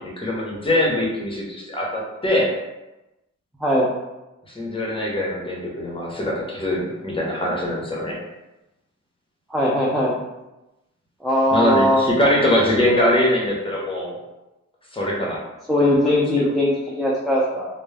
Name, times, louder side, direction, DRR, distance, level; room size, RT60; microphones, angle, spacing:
voice 1, 0.0-2.5 4.5-8.2 11.5-14.2 14.9-15.4, left 1 dB, 15° left, -3 dB, 0.8 m, -22 dB
voice 2, 9.5-10.2 11.2-12.1 15.7-17.7, left 1 dB, ahead, -5 dB, 0.4 m, -20 dB
2.2 x 2.0 x 3.2 m, 1.0 s
cardioid pair, 80°, 31 cm